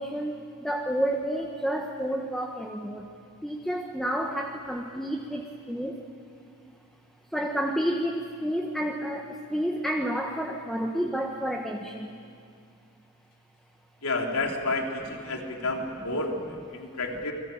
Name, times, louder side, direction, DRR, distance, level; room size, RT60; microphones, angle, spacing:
voice 1, 0.0-3.1 3.4-6.0 7.3-12.2, equal, ahead, 1 dB, 1.4 m, -30 dB
voice 2, 14.0-17.3, left 2 dB, 90° left, 1 dB, 3.5 m, -30 dB
29.5 x 22.0 x 9.0 m, 2.3 s
head